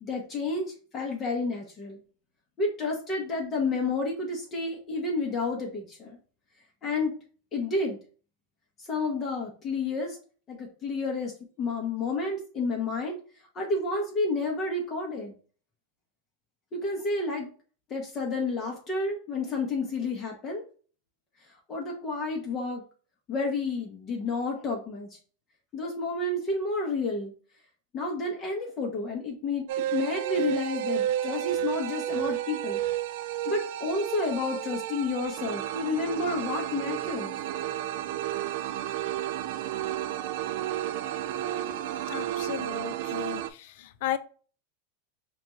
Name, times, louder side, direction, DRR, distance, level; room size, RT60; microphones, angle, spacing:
voice 1, 0.0-2.0 2.6-6.2 6.8-7.1 7.5-8.0 8.9-10.2 10.5-11.3 11.6-13.2 13.5-15.3 16.7-17.5 17.9-20.6 21.7-22.8 23.3-25.1 25.7-27.3 27.9-29.6 29.9-32.8 33.5-37.4, left 3 dB, 30° left, 0.8 m, -30 dB
sound 1, 29.7-43.5, right 12 dB, 65° right, 0.3 m, -32 dB
voice 2, 42.1-44.2, left 12 dB, 65° left, 0.4 m, -35 dB
4.9 x 2.3 x 3.0 m
supercardioid pair, 140°, 0 cm